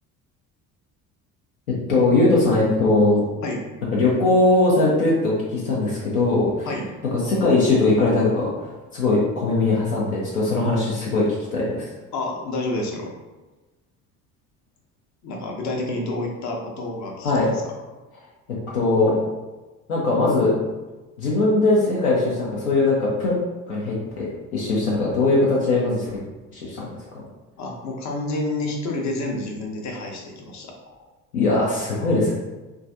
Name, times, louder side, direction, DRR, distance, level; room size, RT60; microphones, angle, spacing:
voice 1, 1.9-3.2 3.9-6.7 7.1-11.9 17.2-17.5 18.5-19.2 19.9-20.6 21.2-23.3 23.7-26.1 26.5-27.2 31.3-32.3, left 2 dB, 80° left, -5 dB, 0.7 m, -20 dB
voice 2, 12.1-13.1 15.2-17.5 27.6-30.7, left 2 dB, 40° left, 0 dB, 0.7 m, -29 dB
3.1 x 2.3 x 2.6 m, 1.1 s
figure-of-eight pair, 60°, 44 cm